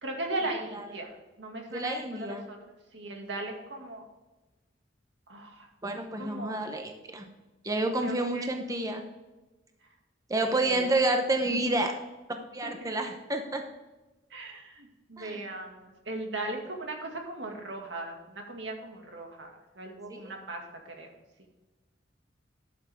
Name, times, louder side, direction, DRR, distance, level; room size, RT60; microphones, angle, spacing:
voice 1, 0.0-2.6 2.9-4.0 5.3-5.7 6.2-6.7 8.0-8.5 10.4-10.8 12.6-13.1 14.3-19.5 19.8-20.6 21.0-21.1, right 2 dB, 80° right, 2 dB, 2.1 m, -38 dB
voice 2, 1.7-2.5 5.8-7.3 7.6-9.0 10.3-11.9 12.3-13.6 15.2-15.4 20.1-20.3, right 2 dB, 20° right, 4 dB, 0.8 m, -29 dB
12.5 x 7.2 x 3.5 m, 1.1 s
head